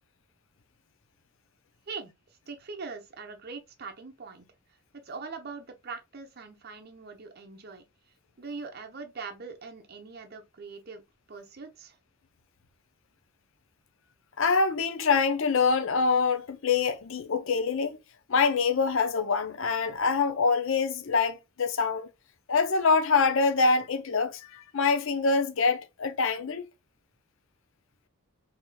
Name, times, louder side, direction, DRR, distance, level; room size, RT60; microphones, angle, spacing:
voice 1, 2.5-4.5 5.0-7.8 8.4-11.0 11.3-12.0, right 4 dB, 45° right, 0.8 m, -42 dB
voice 2, 14.4-18.0 18.3-22.1 22.5-26.7, left 4 dB, 60° left, 0.6 m, -25 dB
4.7 x 2.8 x 2.2 m
head